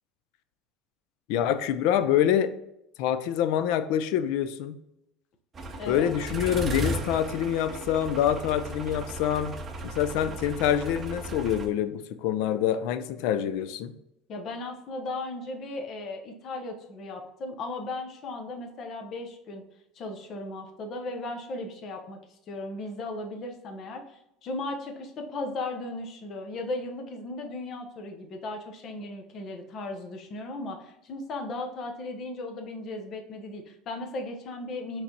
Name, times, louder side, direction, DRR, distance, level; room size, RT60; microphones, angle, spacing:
voice 1, 1.3-2.5 3.0-4.7 5.9-9.5 9.8-13.9, left 10 dB, 70° left, 11 dB, 0.4 m, -26 dB
sound 1, 5.5-11.7, right 2 dB, 25° right, 0.6 m, -35 dB
voice 2, 14.3-19.6 19.9-35.0, left 2 dB, 40° left, 4 dB, 0.8 m, -36 dB
5.8 x 3.3 x 2.7 m, 0.85 s
cardioid pair, 145°, 0 cm